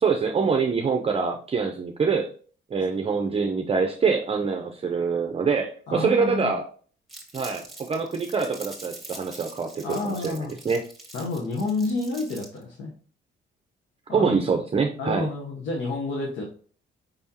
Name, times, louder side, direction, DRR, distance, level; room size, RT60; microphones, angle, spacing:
voice 1, 0.0-2.3 2.7-6.7 7.3-10.8 14.1-15.3, right 5 dB, 30° right, 3 dB, 0.6 m, -25 dB
voice 2, 5.9-6.6 9.8-10.5 11.1-12.9 14.1-14.4 15.0-16.5, left 3 dB, 75° left, -1 dB, 1.1 m, -29 dB
Crumpling crinkling, 7.1-12.6, right 1 dB, ahead, 1.8 m, -44 dB
5.4 x 3.5 x 2.8 m, 0.43 s
cardioid pair, 90°, 20 cm